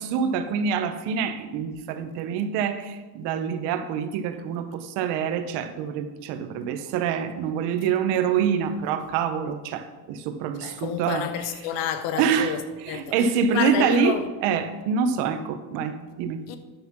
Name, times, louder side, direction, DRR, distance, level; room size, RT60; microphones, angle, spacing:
voice 1, 0.0-11.3 12.2-16.4, right 7 dB, 65° right, 1.0 m, -26 dB
voice 2, 10.6-14.3 16.5-16.6, left 9 dB, 80° left, 1.0 m, -30 dB
10.0 x 5.5 x 6.0 m
cardioid pair, 180°, 44 cm